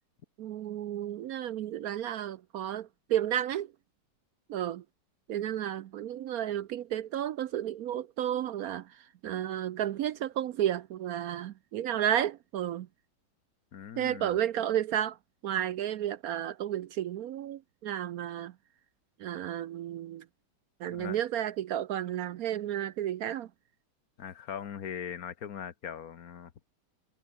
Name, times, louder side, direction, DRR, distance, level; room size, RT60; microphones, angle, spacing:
voice 1, 0.4-3.7 4.5-4.8 5.3-8.9 9.2-12.9 14.0-15.2 15.4-18.5 19.2-20.2 20.8-23.5, right 11 dB, 65° right, 1.0 m, -32 dB
voice 2, 13.7-14.4 20.9-21.2 24.2-26.5, left 8 dB, 60° left, 1.6 m, -40 dB
omnidirectional pair, 1.9 m